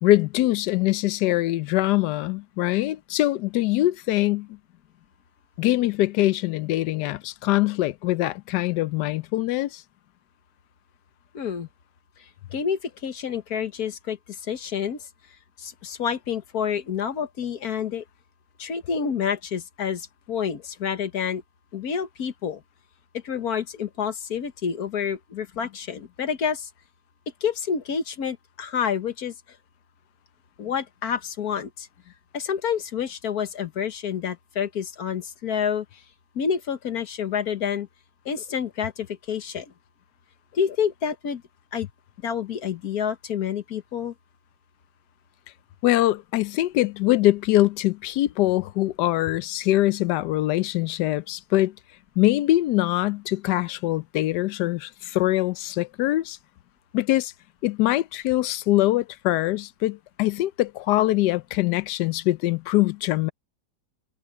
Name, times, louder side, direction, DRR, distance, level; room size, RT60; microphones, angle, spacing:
voice 1, 0.0-4.6 5.6-9.8 45.8-51.7 52.2-56.4 56.9-57.3 57.6-63.3, left 16 dB, 80° left, 1.2 m, -23 dB
voice 2, 11.3-11.7 12.5-14.2 14.5-15.0 15.6-18.0 18.6-21.4 21.7-22.6 23.2-26.7 27.4-29.3 30.6-31.9 32.3-35.9 36.4-37.9 38.3-39.7 40.5-41.4 41.7-41.9 42.2-44.1, left 7 dB, 65° left, 1.7 m, -28 dB
omnidirectional pair, 1.8 m